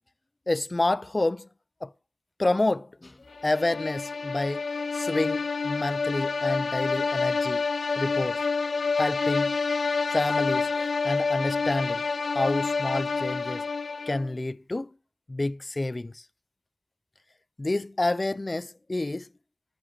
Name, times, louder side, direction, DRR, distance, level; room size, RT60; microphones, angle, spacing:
voice 1, 0.5-1.5 1.8-1.9 2.4-3.2 3.4-4.7 4.9-7.7 8.0-8.5 9.0-9.5 10.1-10.7 11.0-12.0 12.3-13.6 14.1-14.9 15.3-16.2 17.6-19.3, left 2 dB, 30° left, 0.4 m, -28 dB
sound 1, 3.4-14.3, left 4 dB, 75° left, 0.6 m, -28 dB
19.0 x 7.8 x 2.7 m
wide cardioid pair, 85°, 0 cm